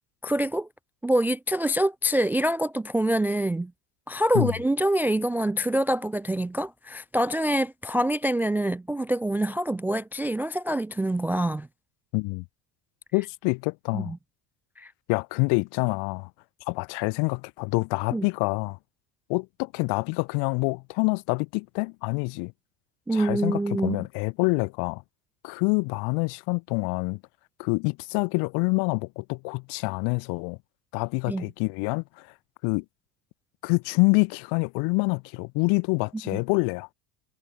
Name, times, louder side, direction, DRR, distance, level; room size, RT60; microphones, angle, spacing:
voice 1, 0.2-0.7 1.0-3.7 4.1-11.7 13.9-14.2 14.8-14.9 18.1-18.3 23.1-24.1 31.3-31.5 36.3-36.4, right 1 dB, 5° right, 0.3 m, -25 dB
voice 2, 12.1-12.4 13.1-14.1 15.1-16.3 16.7-18.8 19.3-22.5 23.1-25.0 25.4-27.2 27.6-30.6 30.9-32.0 32.6-32.8 33.6-36.9, left 33 dB, 65° left, 1.0 m, -26 dB
cardioid pair, 170°, 43 cm